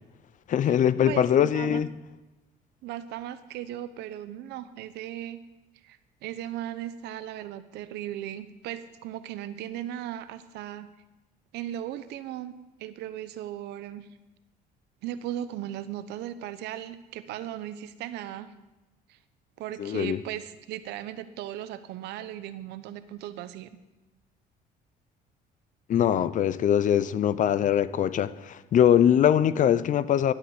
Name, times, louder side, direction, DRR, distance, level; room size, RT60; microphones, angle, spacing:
voice 1, 0.5-1.9 19.8-20.2 25.9-30.3, left 9 dB, 50° left, 0.6 m, -22 dB
voice 2, 1.0-1.8 2.8-5.4 5.8-10.9 11.5-12.5 12.8-14.1 15.0-18.5 19.1-19.2 19.6-23.7, right 12 dB, 85° right, 0.9 m, -37 dB
11.5 x 8.4 x 7.9 m
cardioid pair, 110°, 17 cm